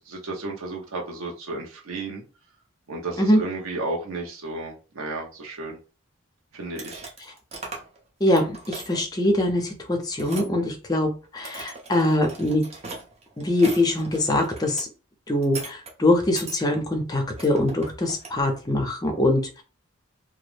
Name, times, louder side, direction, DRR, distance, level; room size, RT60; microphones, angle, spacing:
voice 1, 0.0-2.2 2.9-5.8 6.5-7.0, right 2 dB, 90° right, 0 dB, 0.8 m, -33 dB
sound 1, 6.7-8.0 8.2-9.0 10.2-10.5 11.2-14.8 15.4-15.9 16.4-16.6 17.4-18.4, right 3 dB, 30° right, 0.6 m, -39 dB
voice 2, 8.2-12.6 13.4-14.9 15.3-19.6, left 1 dB, 20° left, 3 dB, 0.5 m, -23 dB
2.3 x 2.0 x 3.1 m, 0.34 s
head